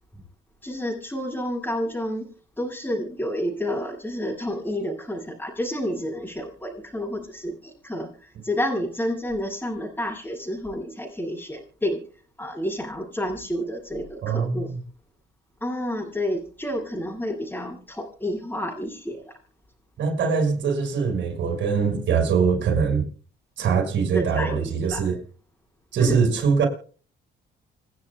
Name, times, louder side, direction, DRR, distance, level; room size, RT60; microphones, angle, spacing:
voice 1, 0.6-12.0 12.4-14.7 15.6-19.3 24.1-25.2 26.0-26.2, equal, 10° left, 7.5 m, -30 dB
voice 2, 14.2-14.7 20.0-23.1 23.6-25.2 25.9-26.7, right 5 dB, 70° right, 5.8 m, -22 dB
28.5 x 9.8 x 2.3 m
cardioid pair, 90°, 20 cm